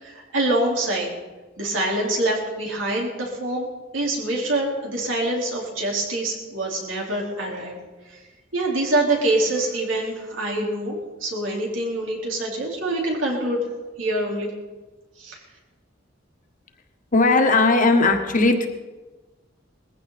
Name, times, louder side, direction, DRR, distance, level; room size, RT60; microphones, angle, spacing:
voice 1, 0.0-1.1 1.6-3.7 3.9-7.8 8.1-8.2 8.5-13.6 14.0-14.5 15.2-15.4, right 2 dB, 85° right, -2 dB, 4.6 m, -25 dB
voice 2, 17.1-18.7, left 3 dB, 45° left, 5 dB, 1.6 m, -17 dB
20.0 x 15.5 x 4.3 m, 1.2 s
head